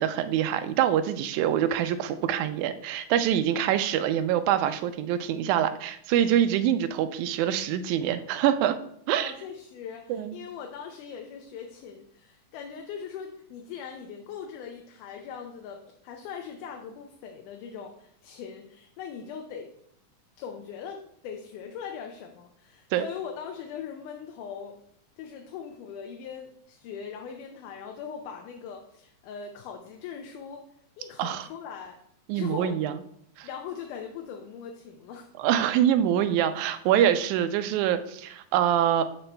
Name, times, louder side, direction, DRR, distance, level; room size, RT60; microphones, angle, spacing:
voice 1, 0.0-8.8 9.1-9.3 10.1-10.4 22.9-23.1 31.2-31.5 32.3-32.9 33.4-33.5 35.4-39.0, right 10 dB, 80° right, 9 dB, 1.9 m, -25 dB
voice 2, 9.1-19.7 20.4-24.8 25.2-30.6 31.0-32.0 32.3-32.8 33.4-35.3, left 7 dB, 85° left, 3 dB, 2.2 m, -40 dB
12.0 x 4.5 x 2.2 m, 0.70 s
omnidirectional pair, 3.6 m